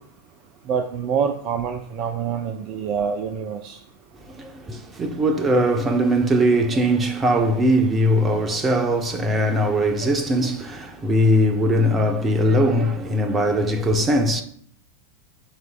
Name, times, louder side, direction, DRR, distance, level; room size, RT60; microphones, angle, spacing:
voice 1, 0.7-3.8, right 7 dB, 40° right, 0.6 m, -26 dB
voice 2, 4.2-14.4, equal, 20° right, 1.0 m, -20 dB
13.0 x 4.7 x 2.3 m
figure-of-eight pair, 90°, 0 cm